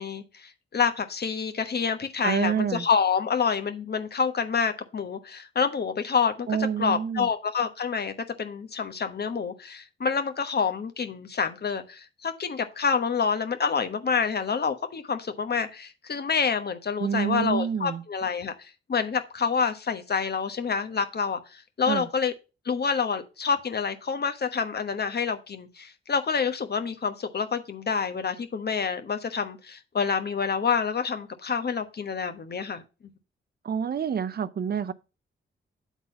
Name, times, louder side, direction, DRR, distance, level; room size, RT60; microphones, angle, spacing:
voice 1, 0.0-6.5 6.8-22.3 22.6-32.8, left 6 dB, 50° left, 1.2 m, -27 dB
voice 2, 2.2-2.9 6.5-7.3 17.0-18.0 21.9-22.1 33.6-34.9, right 7 dB, 50° right, 0.6 m, -27 dB
8.2 x 4.0 x 5.5 m
cardioid pair, 55°, 21 cm